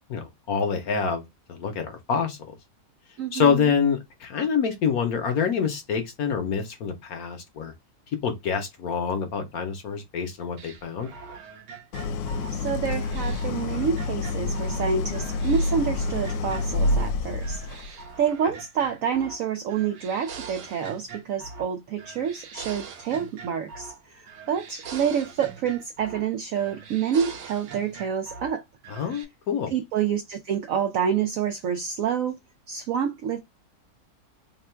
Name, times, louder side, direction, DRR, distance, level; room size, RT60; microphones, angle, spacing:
voice 1, 0.1-1.2 1.5-2.6 3.3-7.7 8.2-11.1 28.9-29.7, left 6 dB, 65° left, 1.0 m, -26 dB
voice 2, 3.2-3.7 12.5-17.6 18.2-28.6 29.7-32.4 32.7-33.4, right 7 dB, 85° right, 0.7 m, -28 dB
sound 1, 10.6-14.8 15.1-17.1 17.4-19.4 19.7-21.7 22.0-24.0 24.3-26.3 26.6-28.5 28.8-29.2, right 5 dB, 70° right, 1.3 m, -42 dB
Idling, 11.9-18.0, left 2 dB, 80° left, 1.2 m, -27 dB
3.6 x 2.2 x 4.3 m
omnidirectional pair, 2.0 m